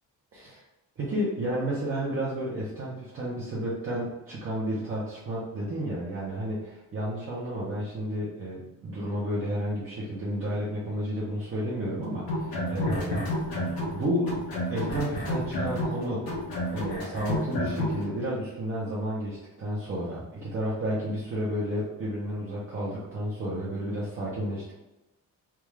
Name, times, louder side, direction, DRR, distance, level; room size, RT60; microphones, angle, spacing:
voice 1, 1.0-16.3 16.7-24.7, equal, 40° right, -7 dB, 0.7 m, -32 dB
sound 1, 12.2-14.0 14.2-18.0, left 1 dB, 80° left, 1.2 m, -30 dB
3.5 x 2.4 x 3.1 m, 1.0 s
cardioid pair, 170°, 36 cm